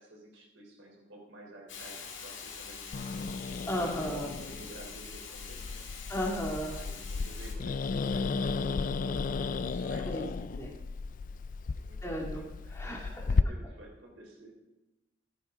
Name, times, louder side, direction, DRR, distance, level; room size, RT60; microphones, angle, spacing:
voice 1, 0.0-3.3 3.7-5.9 6.7-10.8 11.7-14.5, right 1 dB, 85° right, 0 dB, 3.3 m, -51 dB
Hiss, 1.7-7.5, left 5 dB, 85° left, 1.9 m, -45 dB
Growling, 2.9-13.4, left 4 dB, 45° left, 0.3 m, -34 dB
voice 2, 3.7-4.3 6.1-6.7 10.0-10.3 10.6-10.7 12.0-13.2, equal, 15° left, -1 dB, 2.1 m, -34 dB
15.0 x 10.0 x 3.7 m, 1.0 s
head